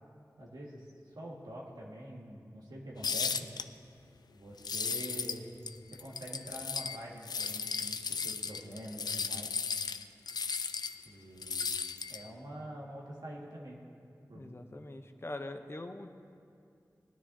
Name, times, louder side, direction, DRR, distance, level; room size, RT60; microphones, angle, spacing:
voice 1, 0.4-3.5 4.3-5.5 5.9-9.5 11.0-11.7 12.1-13.8 14.3-14.6, right 1 dB, 85° right, -3 dB, 1.8 m, -46 dB
sound 1, 3.0-3.6 4.6-5.4 5.7-7.0 7.2-11.0 11.4-12.3, left 5 dB, 85° left, 0.4 m, -35 dB
voice 2, 14.3-16.1, left 2 dB, 40° left, 6 dB, 0.7 m, -43 dB
19.0 x 9.9 x 2.7 m, 2.4 s
wide cardioid pair, 45°, 7 cm